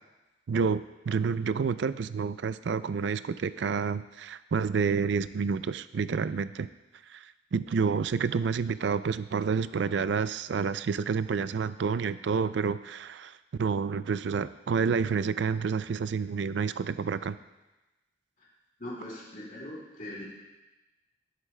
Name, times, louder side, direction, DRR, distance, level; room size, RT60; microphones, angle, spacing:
voice 1, 0.5-6.7 7.1-17.4, right 5 dB, 80° right, 14 dB, 0.4 m, -29 dB
voice 2, 18.8-20.2, left 1 dB, 50° left, -5 dB, 3.2 m, -40 dB
18.5 x 8.1 x 2.2 m, 1.1 s
head